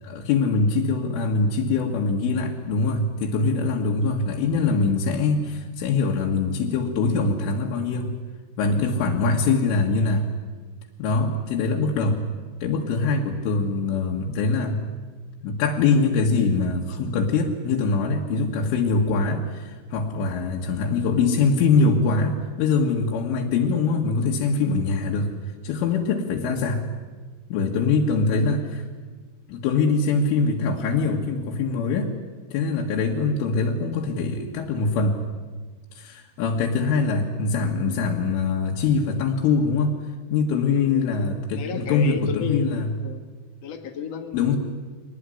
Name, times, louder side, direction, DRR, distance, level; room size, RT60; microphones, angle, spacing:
voice 1, 0.0-8.1 8.6-10.3 11.0-12.2 12.6-14.8 15.4-25.3 25.6-26.8 27.5-28.8 29.5-32.1 32.5-35.2 35.9-39.9 40.3-42.9 44.3-44.6, left 4 dB, 85° left, -1 dB, 4.2 m, -23 dB
voice 2, 40.7-41.1 41.5-43.2 43.6-44.6, left 6 dB, 55° left, 6 dB, 1.8 m, -33 dB
24.0 x 19.5 x 9.9 m, 1.4 s
omnidirectional pair, 5.7 m